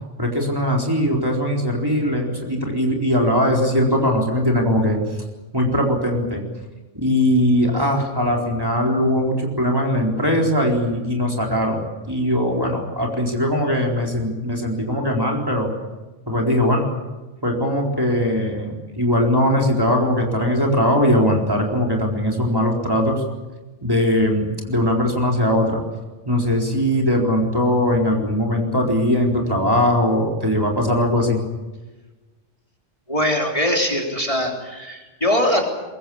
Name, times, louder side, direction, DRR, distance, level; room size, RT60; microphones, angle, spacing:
voice 1, 0.2-5.0 5.5-6.4 6.9-15.7 16.3-16.9 17.4-23.2 23.8-25.8 26.3-31.4, left 1 dB, 20° right, -1 dB, 4.1 m, -20 dB
voice 2, 33.1-35.7, left 1 dB, 25° left, 1 dB, 3.8 m, -21 dB
23.0 x 22.5 x 8.7 m, 1.2 s
omnidirectional pair, 1.3 m